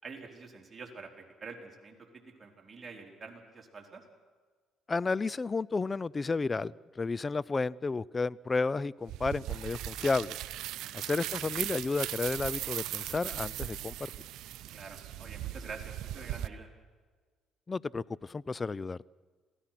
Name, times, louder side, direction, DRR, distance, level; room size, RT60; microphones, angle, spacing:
voice 1, 0.0-4.0 10.8-10.9 14.7-16.7, right 4 dB, 30° right, 4.5 m, -47 dB
voice 2, 4.9-10.4 10.9-14.1 17.7-19.0, left 3 dB, 30° left, 0.5 m, -32 dB
sound 1, 9.1-16.5, right 13 dB, 75° right, 0.7 m, -38 dB
27.0 x 17.0 x 6.0 m
supercardioid pair, 70°, 0 cm